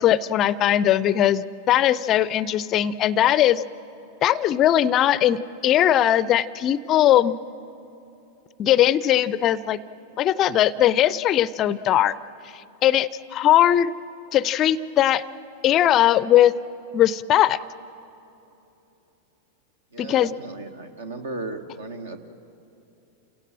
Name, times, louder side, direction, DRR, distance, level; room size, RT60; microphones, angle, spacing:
voice 1, 0.0-3.6 4.2-7.4 8.6-9.8 10.2-12.2 12.8-13.9 14.3-15.2 15.6-16.5 16.9-17.6 20.0-20.3, left 12 dB, 35° left, 18 dB, 0.5 m, -19 dB
voice 2, 19.9-22.2, right 2 dB, 65° right, 7 dB, 1.5 m, -35 dB
28.5 x 17.5 x 7.5 m, 2.9 s
figure-of-eight pair, 90°, 0 cm